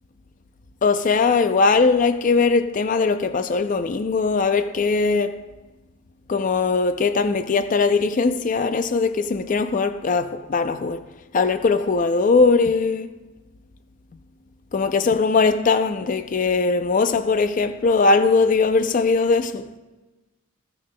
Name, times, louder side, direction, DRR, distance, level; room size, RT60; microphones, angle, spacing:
voice 1, 0.8-5.4 6.3-11.0 11.3-13.1 14.7-19.7, left 4 dB, 40° left, 0.4 m, -20 dB
15.0 x 9.7 x 2.2 m
head